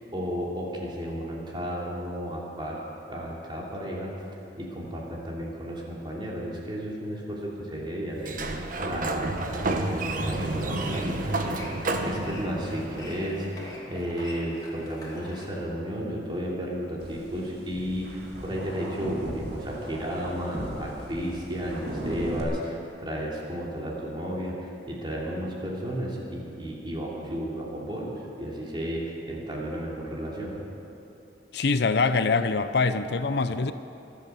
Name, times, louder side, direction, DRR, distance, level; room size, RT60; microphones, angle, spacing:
voice 1, 0.1-2.8 3.1-4.1 4.6-13.5 13.9-30.5, equal, 25° right, -4 dB, 3.1 m, -33 dB
Sliding door, 8.2-13.8, right 2 dB, 50° right, 1.1 m, -30 dB
sound 1, 10.2-15.5, left 1 dB, 25° left, 2.7 m, -45 dB
sound 2, 17.0-22.4, equal, 65° right, 2.5 m, -37 dB
voice 2, 31.5-33.7, left 4 dB, 65° left, 11 dB, 0.6 m, -24 dB
24.5 x 8.5 x 7.0 m, 2.9 s
head